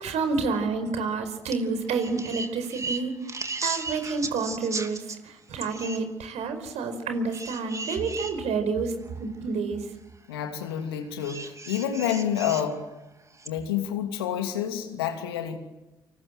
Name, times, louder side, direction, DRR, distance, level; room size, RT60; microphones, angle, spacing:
voice 1, 0.0-3.1 3.6-9.9, right 4 dB, 65° right, 8 dB, 5.0 m, -29 dB
sound 1, 1.5-1.6 1.9-5.2 5.6-6.0 7.3-8.3 9.1-9.2 11.2-12.7 13.4-13.5, right 3 dB, 25° right, 2.9 m, -36 dB
voice 2, 10.3-12.8 13.4-15.6, left 9 dB, 85° left, 6 dB, 2.7 m, -28 dB
28.5 x 26.5 x 7.8 m, 1.0 s
hypercardioid pair, 45°, 12 cm